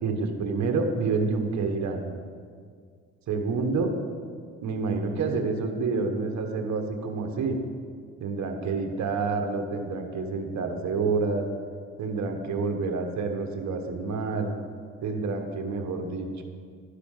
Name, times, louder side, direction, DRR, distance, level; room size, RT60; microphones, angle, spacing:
voice 1, 0.0-2.1 3.3-3.9 4.6-7.6 8.2-11.5 12.0-14.5 15.0-16.4, right 4 dB, 65° right, 4 dB, 1.3 m, -28 dB
12.5 x 5.1 x 6.5 m, 2.1 s
cardioid pair, 90°, 30 cm